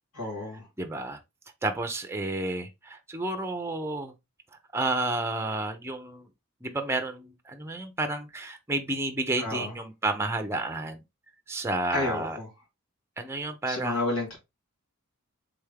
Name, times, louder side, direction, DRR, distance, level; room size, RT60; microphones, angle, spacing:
voice 1, 0.1-0.6 9.4-9.7 11.9-12.4 13.7-14.4, left 2 dB, 85° left, 2.4 m, -31 dB
voice 2, 0.8-1.2 1.6-4.1 4.7-6.3 6.6-11.0 11.5-12.4 13.2-14.2, right 2 dB, 10° right, 0.5 m, -31 dB
3.7 x 3.4 x 3.3 m
head